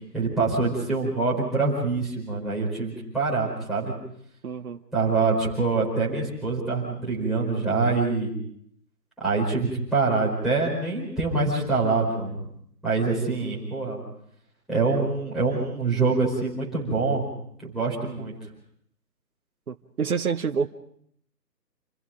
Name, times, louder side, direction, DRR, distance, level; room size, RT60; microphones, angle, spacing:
voice 1, 0.1-3.9 4.9-8.3 9.2-12.4 12.8-14.0 14.7-17.3 17.6-18.3, right 3 dB, ahead, -9 dB, 4.7 m, -25 dB
voice 2, 4.4-4.8 19.7-20.7, right 6 dB, 60° right, 7 dB, 1.2 m, -27 dB
29.0 x 28.0 x 3.8 m, 0.68 s
figure-of-eight pair, 155°, 50 cm